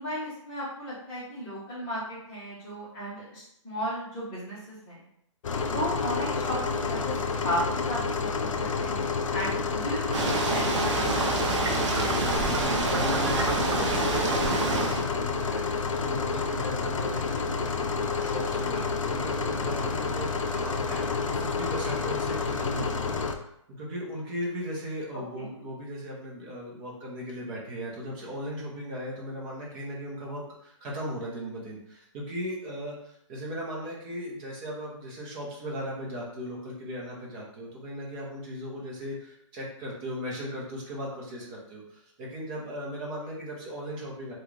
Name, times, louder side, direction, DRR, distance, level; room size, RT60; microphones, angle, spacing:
voice 1, 0.0-5.0 5.7-7.1 7.4-11.0 25.3-25.5, equal, 20° left, -9 dB, 1.2 m, -34 dB
sound 1, 5.4-23.4, left 4 dB, 75° left, 0.5 m, -29 dB
sound 2, 10.1-15.1, right 3 dB, 65° right, 0.7 m, -27 dB
voice 2, 11.9-23.2 23.8-44.3, equal, 20° right, -4 dB, 0.8 m, -37 dB
3.5 x 2.4 x 3.2 m, 0.74 s
hypercardioid pair, 165°, 16 cm